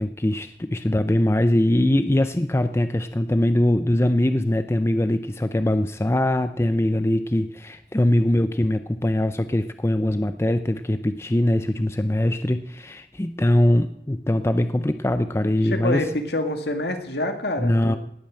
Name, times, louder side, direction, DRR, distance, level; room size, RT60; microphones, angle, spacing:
voice 1, 0.0-16.1 17.6-18.0, left 1 dB, 15° left, 10 dB, 0.5 m, -22 dB
voice 2, 15.7-18.0, left 1 dB, 65° left, 6 dB, 2.2 m, -26 dB
19.0 x 8.8 x 7.7 m, 0.77 s
head